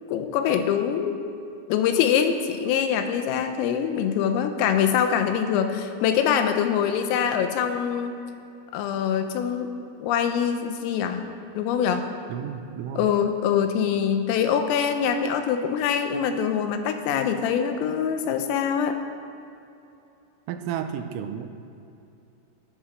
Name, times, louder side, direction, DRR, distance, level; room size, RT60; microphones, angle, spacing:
voice 1, 0.1-1.2 1.7-8.2 8.7-9.7 10.0-11.2 11.6-12.1 13.0-19.0, left 8 dB, 85° left, 7 dB, 3.5 m, -24 dB
voice 2, 12.3-13.1 20.5-21.5, right 9 dB, 85° right, 7 dB, 3.3 m, -32 dB
14.5 x 11.5 x 6.3 m, 2.8 s
omnidirectional pair, 5.9 m